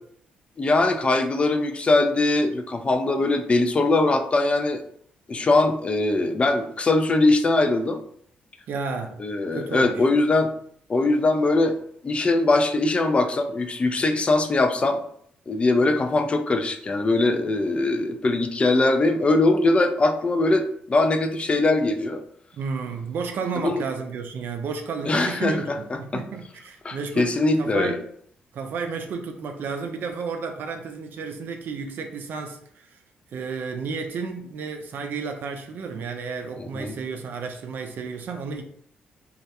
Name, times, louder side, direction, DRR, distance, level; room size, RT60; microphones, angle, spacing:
voice 1, 0.6-4.8 5.3-8.0 9.2-10.5 10.9-11.8 12.0-15.0 15.5-22.2 23.6-23.8 25.1-26.2 26.8-28.0 36.6-37.0, left 2 dB, 35° left, 0.4 m, -21 dB
voice 2, 8.7-9.2 9.5-10.1 22.5-28.0 28.5-33.0 33.3-38.6, right 5 dB, 65° right, 0.4 m, -32 dB
2.3 x 2.1 x 2.8 m
supercardioid pair, 65°, 4 cm